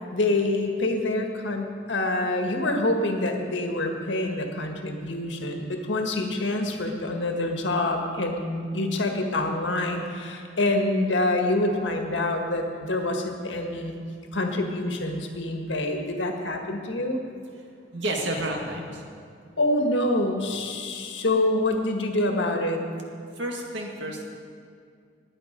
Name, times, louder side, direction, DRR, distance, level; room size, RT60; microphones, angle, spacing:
voice 1, 0.1-13.9 14.3-17.2 19.6-22.8, left 2 dB, 80° left, 3 dB, 1.7 m, -26 dB
voice 2, 17.6-19.0 23.3-24.2, right 1 dB, 80° right, 1 dB, 2.1 m, -31 dB
20.5 x 8.6 x 5.3 m, 2.3 s
head